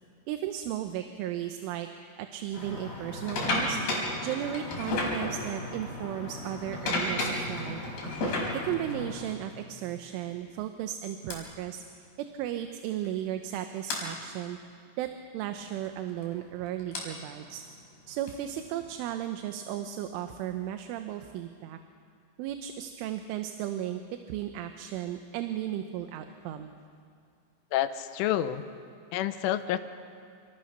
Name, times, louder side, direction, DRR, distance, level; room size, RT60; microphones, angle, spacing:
voice 1, 0.3-1.9 2.2-3.8 4.2-7.8 8.5-14.6 15.0-17.6 18.1-21.8 22.4-24.0 24.3-26.7, right 11 dB, 80° right, 7 dB, 3.4 m, -35 dB
sound 1, 2.5-9.3 10.1-10.3 11.3-11.4 12.7-12.8 13.0-13.2 13.9-14.0 15.8-18.9, left 2 dB, 50° left, 6.7 m, -33 dB
voice 2, 27.7-28.6 29.1-29.8, left 12 dB, 80° left, 11 dB, 3.4 m, -28 dB
29.5 x 26.0 x 6.7 m, 2.3 s
omnidirectional pair, 5.8 m